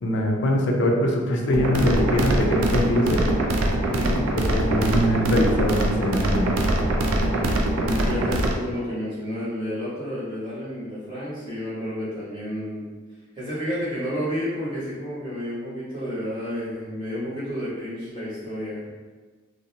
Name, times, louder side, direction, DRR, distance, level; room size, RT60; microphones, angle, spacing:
voice 1, 0.0-3.3 4.4-6.6, equal, 55° left, 1 dB, 0.3 m, -22 dB
sound 1, 1.5-8.5, right 1 dB, 85° right, 0.4 m, -23 dB
voice 2, 3.8-4.2 7.7-12.9 13.3-18.9, equal, 25° right, -10 dB, 0.8 m, -30 dB
2.4 x 2.0 x 2.7 m, 1.3 s
head